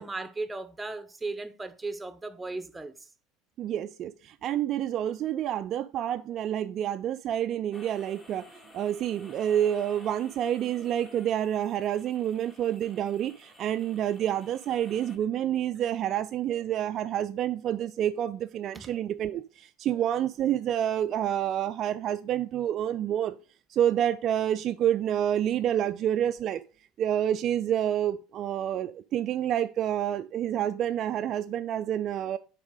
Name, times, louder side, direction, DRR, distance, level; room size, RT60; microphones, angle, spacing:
voice 1, 0.0-3.1 18.7-18.9, right 3 dB, 10° right, 0.9 m, -36 dB
voice 2, 3.6-8.5 8.7-23.4 23.7-26.6 27.0-32.4, right 10 dB, 45° right, 0.4 m, -28 dB
sound 1, 7.7-15.2, left 1 dB, 30° left, 2.4 m, -53 dB
7.0 x 4.9 x 3.6 m
hypercardioid pair, 70°, 0 cm